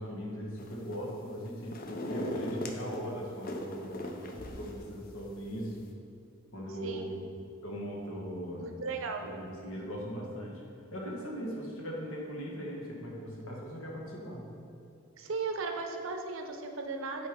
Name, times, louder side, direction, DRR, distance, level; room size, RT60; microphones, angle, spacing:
voice 1, 0.0-1.8 2.1-5.8 6.5-7.3 7.6-8.7 9.2-10.6 10.9-14.5, equal, 65° left, -2 dB, 1.3 m, -39 dB
sound 1, 0.6-1.1 1.5-3.0 3.4-4.8 5.2-5.3, left 1 dB, 40° left, 0.5 m, -39 dB
voice 2, 6.7-7.1 8.6-9.3 15.2-17.3, right 4 dB, 60° right, 5 dB, 0.6 m, -36 dB
8.1 x 4.5 x 3.6 m, 2.6 s
head